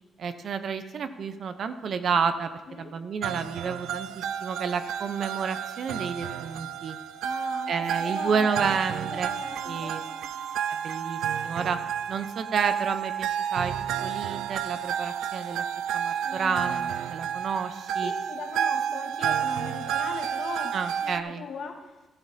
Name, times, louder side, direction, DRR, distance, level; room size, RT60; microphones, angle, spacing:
voice 1, 0.2-2.5 2.8-7.0 7.7-9.4 9.6-10.0 10.7-11.8 12.1-13.7 14.0-15.6 15.9-18.1 20.7-21.5, right 6 dB, 60° right, 9 dB, 0.7 m, -30 dB
sound 1, 3.2-21.2, right 9 dB, 85° right, 0.4 m, -31 dB
voice 2, 7.2-10.4 16.2-17.0 18.0-20.7 21.0-22.0, left 5 dB, 65° left, 2 dB, 1.6 m, -40 dB
12.5 x 12.0 x 2.8 m, 1.1 s
cardioid pair, 70°, 0 cm